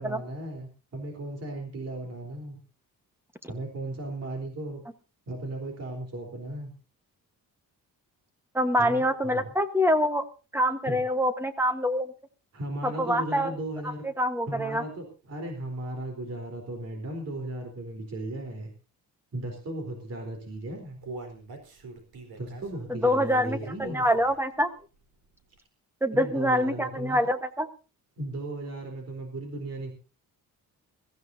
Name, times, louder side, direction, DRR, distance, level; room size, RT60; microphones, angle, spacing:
voice 1, 0.0-2.6 3.5-4.8 5.3-6.7 8.8-9.0 9.2-9.5 10.8-11.0 12.5-14.0 14.5-18.7 19.3-21.0 22.4-24.0 26.1-27.2 28.2-29.9, right 1 dB, 45° right, 3 dB, 3.9 m, -36 dB
voice 2, 8.5-10.2 10.5-12.1 12.8-13.5 14.0-14.8 22.9-24.7 26.0-27.7, equal, 5° right, 9 dB, 1.2 m, -25 dB
Human voice, 20.4-24.6 25.0-25.1 25.6-25.7, right 3 dB, 75° right, 4.2 m, -43 dB
22.0 x 14.5 x 2.7 m, 0.33 s
wide cardioid pair, 175°, 36 cm